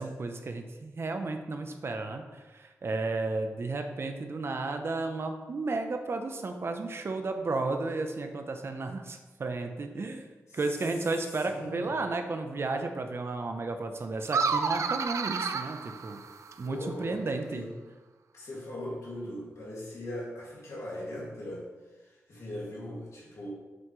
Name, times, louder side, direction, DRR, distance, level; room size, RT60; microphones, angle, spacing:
voice 1, 0.0-10.3 10.5-16.2 16.6-17.6, right 3 dB, 55° right, 5 dB, 0.7 m, -33 dB
voice 2, 11.4-12.0 16.6-17.7 18.3-23.5, left 1 dB, 75° left, -4 dB, 2.2 m, -40 dB
sound 1, 14.2-16.7, right 5 dB, 80° right, 0.4 m, -30 dB
7.7 x 5.7 x 3.2 m, 1.3 s
wide cardioid pair, 85°, 5 cm